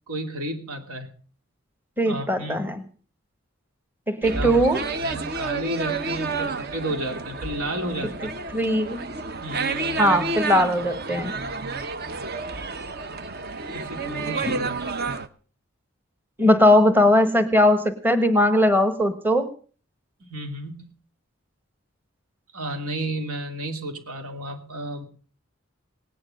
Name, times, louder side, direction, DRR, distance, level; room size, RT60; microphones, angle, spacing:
voice 1, 0.1-1.1 2.0-2.7 4.3-4.7 5.0-8.3 9.4-10.3 13.7-14.8 20.2-20.9 22.5-25.0, right 1 dB, 85° right, 5 dB, 2.8 m, -32 dB
voice 2, 2.0-2.8 4.1-4.8 8.5-9.0 10.0-11.3 14.4-14.6 16.4-19.5, left 1 dB, 10° right, 8 dB, 1.3 m, -19 dB
sound 1, 4.2-15.3, right 3 dB, 45° right, 0.9 m, -30 dB
18.5 x 10.0 x 6.4 m, 0.41 s
head